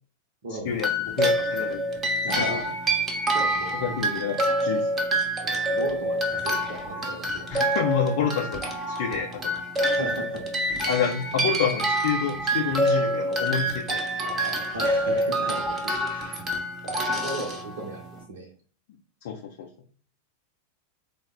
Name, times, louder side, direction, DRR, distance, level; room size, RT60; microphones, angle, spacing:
voice 1, 0.4-0.8 2.2-2.7 3.3-3.8 5.4-7.7 9.8-10.9 14.2-16.5 16.8-18.5, right 1 dB, 55° right, 0 dB, 0.7 m, -37 dB
sound 1, 0.8-18.2, right 1 dB, 20° right, 0.8 m, -27 dB
voice 2, 1.2-1.9 2.4-2.6 3.8-4.9 7.5-9.6 10.9-14.0 19.2-19.7, left 7 dB, 55° left, -1 dB, 0.5 m, -28 dB
3.3 x 2.0 x 3.6 m, 0.42 s
figure-of-eight pair, 90°, 0 cm